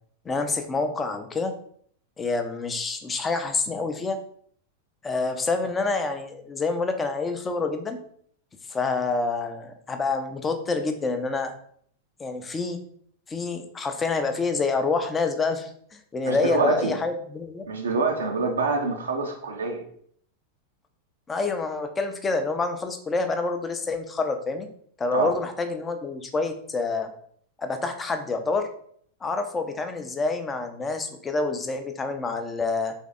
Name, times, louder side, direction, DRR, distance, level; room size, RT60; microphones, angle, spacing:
voice 1, 0.2-1.5 2.2-4.2 5.0-8.0 8.7-11.5 12.2-12.8 13.3-15.7 16.1-17.6 21.3-24.7 25.0-27.1 27.6-28.7 29.2-32.9, left 3 dB, 15° left, 6 dB, 0.6 m, -27 dB
voice 2, 16.3-16.9 17.7-19.8 25.1-25.3, right 3 dB, 70° right, 3 dB, 0.6 m, -26 dB
3.6 x 3.3 x 3.8 m, 0.62 s
figure-of-eight pair, 90°, 0 cm